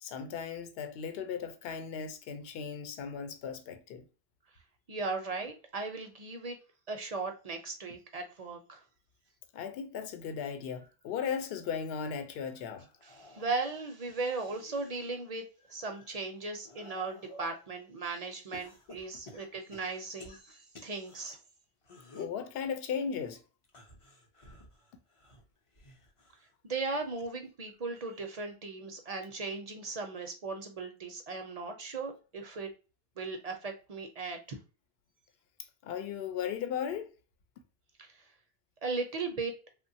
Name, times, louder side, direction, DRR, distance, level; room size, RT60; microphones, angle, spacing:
voice 1, 0.0-4.0 9.5-12.9 22.1-23.4 35.8-37.1, left 7 dB, 70° left, 0.8 m, -36 dB
voice 2, 4.9-6.6 6.9-8.8 13.0-15.4 15.7-21.4 26.6-32.7 33.2-34.6 38.0-38.2 38.8-39.5, right 3 dB, 50° right, 0.5 m, -37 dB
sound 1, 12.9-15.2 15.7-17.7 18.5-21.3 21.8-22.4 23.6-26.5 26.9-27.3 28.5-28.6, left 3 dB, 40° left, 0.6 m, -52 dB
3.0 x 2.2 x 2.6 m
omnidirectional pair, 1.1 m